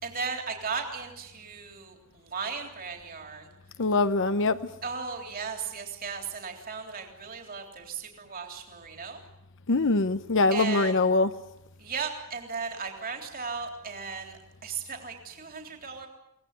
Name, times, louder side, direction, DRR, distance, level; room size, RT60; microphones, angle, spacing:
voice 1, 0.0-3.5 4.8-9.2 10.5-11.0 11.8-16.1, right 5 dB, 40° right, 3.5 m, -36 dB
voice 2, 3.8-4.6 9.7-11.3, left 3 dB, 60° left, 0.8 m, -23 dB
23.5 x 19.0 x 9.6 m
head